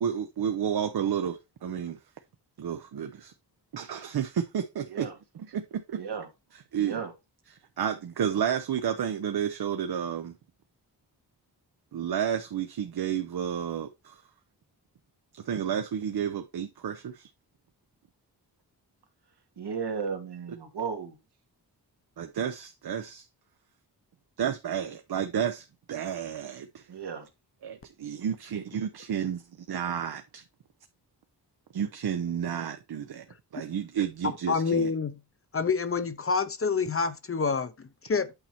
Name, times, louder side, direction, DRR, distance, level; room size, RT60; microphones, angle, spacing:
voice 1, 0.0-2.0 2.6-3.3 3.7-5.1 5.5-6.0 6.7-7.0 7.8-10.3 11.9-14.2 15.5-17.3 22.2-23.2 24.4-26.8 27.6-29.4 29.7-30.4 31.7-33.2 33.5-34.9, right 8 dB, 70° right, 0.8 m, -31 dB
voice 2, 5.9-6.3 6.8-7.1 19.6-21.2 26.9-27.3, right 6 dB, 85° right, 2.0 m, -34 dB
voice 3, 34.2-35.2 35.5-38.3, left 5 dB, 35° left, 0.7 m, -28 dB
8.9 x 4.4 x 4.3 m
wide cardioid pair, 150°, 40 cm